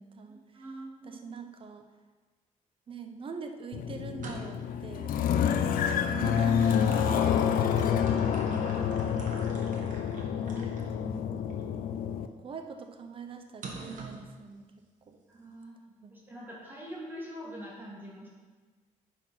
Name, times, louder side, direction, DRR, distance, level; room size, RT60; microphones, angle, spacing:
voice 1, 0.0-0.7 1.0-1.9 2.9-5.1 6.1-10.0 11.5-11.7 12.4-14.6 15.1-15.2 16.0-16.1, right 4 dB, 40° right, 5 dB, 0.9 m, -44 dB
voice 2, 0.5-1.2 5.4-5.9 10.4-11.3 15.3-15.8 16.1-18.3, equal, 15° right, -4 dB, 2.0 m, -44 dB
sound 1, 3.7-12.3, left 8 dB, 85° left, 0.6 m, -28 dB
sound 2, 4.2-4.8 6.0-10.9 11.5-11.6 13.6-14.3, right 3 dB, 65° right, 1.5 m, -45 dB
9.9 x 4.5 x 5.8 m, 1.4 s
cardioid pair, 135°, 14 cm